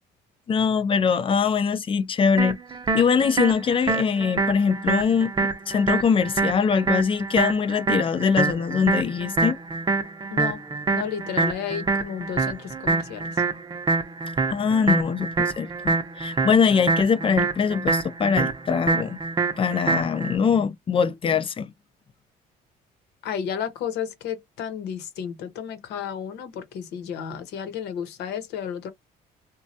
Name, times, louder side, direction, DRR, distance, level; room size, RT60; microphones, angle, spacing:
voice 1, 0.5-2.6 2.9-9.6 14.5-19.2 19.6-21.7, left 6 dB, 30° left, 0.4 m, -22 dB
sound 1, 2.4-20.4, right 3 dB, 25° right, 0.6 m, -26 dB
voice 2, 10.9-13.4 23.2-28.9, left 8 dB, 80° left, 0.9 m, -32 dB
3.1 x 2.2 x 2.7 m
cardioid pair, 110°, 17 cm